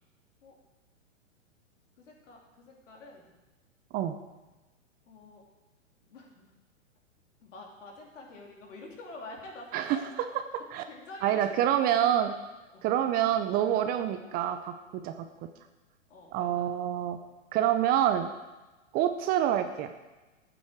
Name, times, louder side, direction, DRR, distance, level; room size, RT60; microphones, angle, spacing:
voice 1, 2.0-3.3 5.1-5.4 6.1-6.5 7.4-10.0 10.9-11.7 12.7-12.9 16.1-16.6 17.6-17.8, left 2 dB, 70° left, -1 dB, 3.6 m, -47 dB
voice 2, 11.2-12.3 12.8-15.3 16.3-17.2 17.5-18.3 18.9-19.9, right 11 dB, 25° right, 8 dB, 0.6 m, -27 dB
13.0 x 8.9 x 4.6 m, 1.1 s
hypercardioid pair, 115°, 39 cm